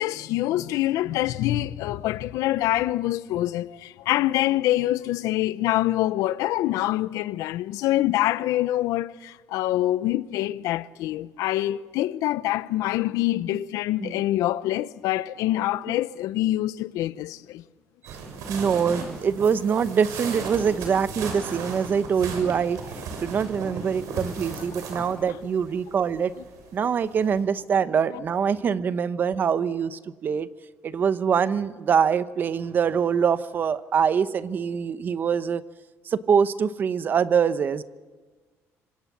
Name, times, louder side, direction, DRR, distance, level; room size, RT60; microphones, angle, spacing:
voice 1, 0.0-17.6, left 15 dB, 90° left, 0.8 m, -25 dB
sound 1, 18.0-27.4, right 4 dB, 80° right, 6.7 m, -36 dB
voice 2, 18.5-22.8 23.2-26.3 26.7-30.5 30.8-35.6 36.1-37.8, right 7 dB, 35° right, 0.9 m, -24 dB
26.0 x 25.0 x 7.4 m
cardioid pair, 160°, 6 cm